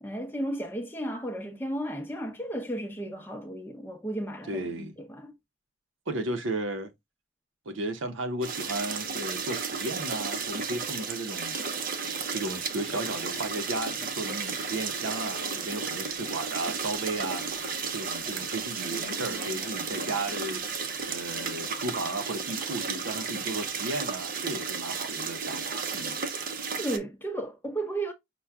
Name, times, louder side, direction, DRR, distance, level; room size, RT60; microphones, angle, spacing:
voice 1, 0.0-5.3 26.8-28.1, right 1 dB, 10° left, 0.7 m, -34 dB
voice 2, 4.5-4.9 6.1-6.9 7.7-11.6 12.3-17.4 17.9-26.2, right 2 dB, 80° right, 0.7 m, -34 dB
sound 1, 8.4-27.0, right 5 dB, 45° right, 0.6 m, -33 dB
sound 2, 12.1-21.9, left 4 dB, 60° left, 0.4 m, -48 dB
5.7 x 2.2 x 3.5 m
head